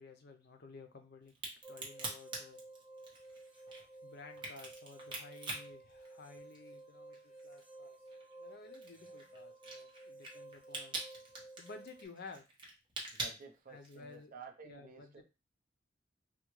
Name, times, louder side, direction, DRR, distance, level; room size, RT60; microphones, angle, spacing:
voice 1, 0.0-1.3 1.7-2.6 4.0-8.0 8.4-11.0 11.6-12.5 13.7-14.3 14.6-15.2, left 3 dB, 55° left, 6 dB, 0.5 m, -54 dB
Crack, 1.3-6.8 7.1-14.1, right 2 dB, 25° right, 0.9 m, -44 dB
sound 1, 1.6-12.1, right 2 dB, 5° right, 1.0 m, -54 dB
voice 2, 13.1-15.2, right 4 dB, 45° right, 3 dB, 0.6 m, -53 dB
3.5 x 2.1 x 3.0 m, 0.29 s
head